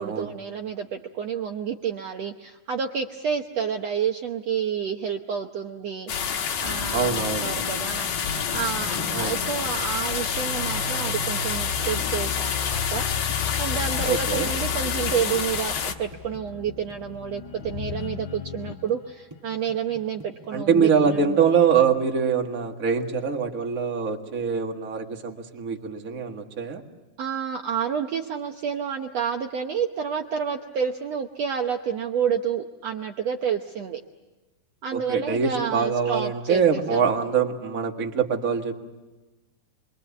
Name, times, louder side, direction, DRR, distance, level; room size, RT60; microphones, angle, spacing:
voice 1, 0.0-21.4 27.2-34.0 34.8-37.1, right 7 dB, 80° right, 4 dB, 1.4 m, -29 dB
sound 1, 6.1-15.9, left 7 dB, 65° left, 3.1 m, -28 dB
sound 2, 6.6-18.9, left 6 dB, 80° left, 3.4 m, -35 dB
voice 2, 6.9-7.5 9.1-9.4 14.1-14.5 20.5-26.8 34.9-38.7, right 6 dB, 40° right, 2 dB, 1.3 m, -24 dB
sound 3, 11.2-18.9 19.3-21.1, equal, 15° right, 0.9 m, -46 dB
28.0 x 23.0 x 8.3 m, 1.2 s
omnidirectional pair, 4.4 m